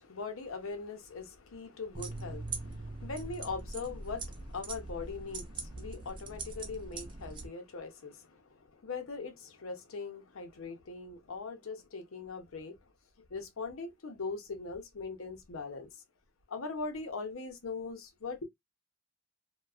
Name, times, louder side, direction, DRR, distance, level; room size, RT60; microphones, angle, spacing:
voice 1, 0.0-12.9 13.2-16.0 16.5-18.4, left 4 dB, 85° left, 0.7 m, -41 dB
sound 1, 1.9-7.5, right 3 dB, 25° right, 0.4 m, -42 dB
2.4 x 2.3 x 2.3 m
head